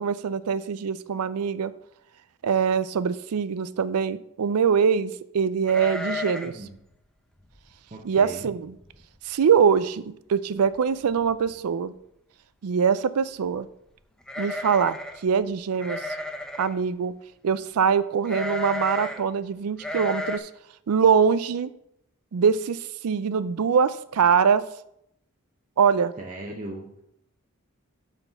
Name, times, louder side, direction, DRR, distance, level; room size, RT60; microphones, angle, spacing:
voice 1, 0.0-1.7 2.4-6.5 8.0-8.7 9.2-11.9 12.6-13.7 14.4-15.0 15.2-16.0 16.6-17.1 17.4-20.5 20.9-21.7 22.3-24.6 25.8-26.1, right 6 dB, 90° right, 0.4 m, -23 dB
sound 1, 5.7-6.6 6.9-7.0 7.5-7.7 8.3-8.4 8.7-9.2 9.5-9.6 10.7-10.8 11.1-11.6 14.2-15.2 15.8-16.8 18.3-19.2 19.8-20.4, left 2 dB, 5° left, 0.6 m, -33 dB
voice 2, 6.4-6.8 7.9-8.5 26.2-27.0, right 2 dB, 35° right, 0.8 m, -38 dB
6.2 x 5.7 x 6.8 m
head